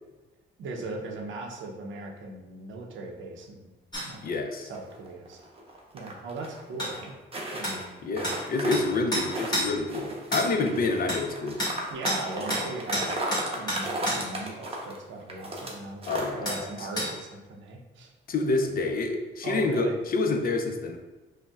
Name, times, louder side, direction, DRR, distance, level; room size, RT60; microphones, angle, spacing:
voice 1, 0.6-3.7 4.0-5.4 5.9-7.1 7.5-8.0 11.9-13.2 13.5-18.1 19.4-20.0, right 3 dB, 75° right, 1 dB, 0.6 m, -39 dB
sound 1, 3.9-4.1 6.8-6.9 7.6-7.8 8.2-8.4 8.7-8.9 9.1-9.7 10.3-10.5 11.1-11.2 11.6-11.8 12.1-12.2 12.5-12.7 12.9-14.2 16.5-16.6 17.0-17.1, equal, 20° left, 1.4 m, -29 dB
voice 2, 4.2-4.7 8.0-11.6 16.1-16.9 18.3-21.0, left 3 dB, 45° left, 4 dB, 0.5 m, -28 dB
sound 2, 4.7-6.6 6.9-7.8 8.1-9.6 9.9-15.7 16.0-16.3 16.7-17.1, right 1 dB, 30° right, 0.8 m, -35 dB
5.2 x 2.1 x 2.3 m, 1.1 s
cardioid pair, 90°, 20 cm